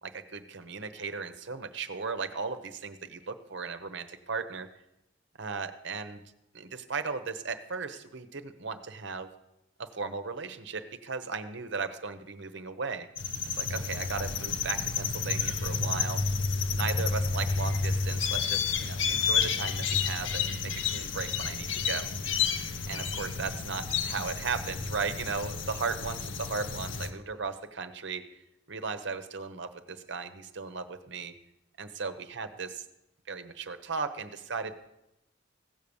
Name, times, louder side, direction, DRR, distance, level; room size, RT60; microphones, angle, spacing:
voice 1, 0.0-4.7 5.4-6.2 6.5-9.3 9.8-13.1 13.5-16.2 16.8-22.1 22.9-28.2 28.7-31.3 31.8-32.8 33.3-34.8, right 5 dB, 65° right, 9 dB, 1.0 m, -36 dB
sound 1, 13.2-27.1, left 5 dB, 70° left, 0.9 m, -30 dB
16.0 x 6.6 x 7.1 m, 0.87 s
head